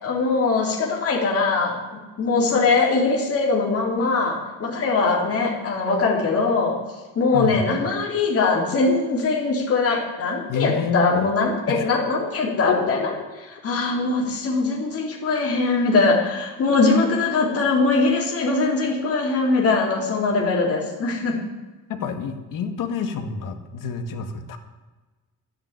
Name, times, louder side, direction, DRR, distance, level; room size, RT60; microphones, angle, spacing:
voice 1, 0.0-6.8 7.2-13.0 13.6-21.3, left 3 dB, 40° left, -2 dB, 4.0 m, -21 dB
voice 2, 10.5-11.9 12.7-12.9 21.9-24.6, left 5 dB, 60° left, 6 dB, 2.0 m, -28 dB
12.5 x 10.5 x 9.8 m, 1.2 s
cardioid pair, 165°, 36 cm